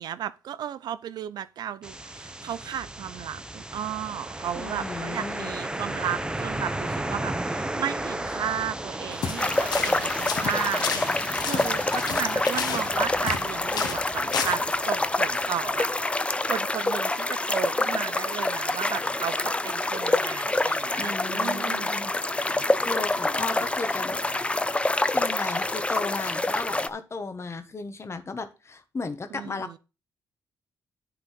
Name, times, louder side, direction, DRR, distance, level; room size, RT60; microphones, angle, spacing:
voice 1, 0.0-15.9 16.2-21.9 23.3-23.7 29.3-29.8, right 10 dB, 75° right, 0.6 m, -34 dB
sound 1, 1.8-15.7, right 1 dB, 10° right, 0.9 m, -35 dB
voice 2, 4.5-5.6 21.0-22.2 22.5-24.2 25.1-29.8, left 4 dB, 40° left, 1.3 m, -35 dB
sound 2, 9.1-9.4 9.7-10.0 10.3-13.5 13.7-14.0 14.3-14.6, left 6 dB, 70° left, 1.4 m, -31 dB
sound 3, 9.4-26.9, left 2 dB, 15° left, 0.6 m, -26 dB
9.9 x 3.9 x 6.4 m
cardioid pair, 65°, 7 cm